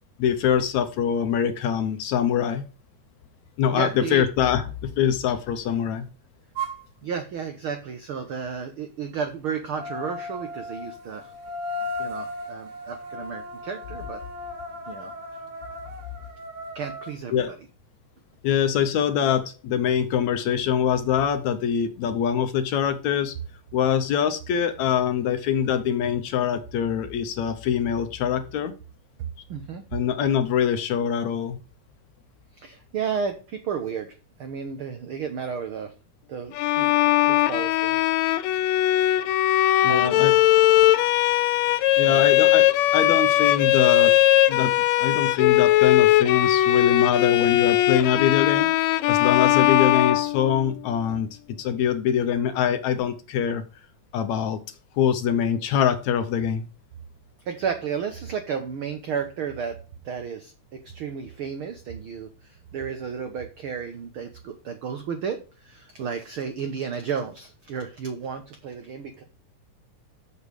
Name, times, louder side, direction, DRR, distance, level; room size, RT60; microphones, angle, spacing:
voice 1, 0.2-2.7 3.6-6.1 17.3-17.5 18.4-23.4 23.7-28.7 29.9-31.6 39.8-40.4 42.0-42.7 42.9-44.1 44.5-44.7 45.0-48.7 49.1-51.3 51.6-53.6 54.1-54.6 55.0-56.7, left 8 dB, 70° left, 9 dB, 1.9 m, -24 dB
voice 2, 3.7-4.2 7.0-11.3 12.0-14.2 14.9-15.1 16.7-17.4 29.5-29.8 32.5-35.9 36.3-36.9 37.3-38.1 39.2-39.4 39.9-40.4 42.0-42.2 57.4-59.8 60.0-69.2, right 6 dB, 85° right, 7 dB, 1.1 m, -33 dB
sound 1, 6.6-6.8 9.7-17.2, left 1 dB, 60° right, 2.6 m, -36 dB
Bowed string instrument, 36.6-50.8, left 14 dB, 85° left, 1.5 m, -20 dB
7.1 x 6.6 x 5.2 m, 0.34 s
omnidirectional pair, 3.8 m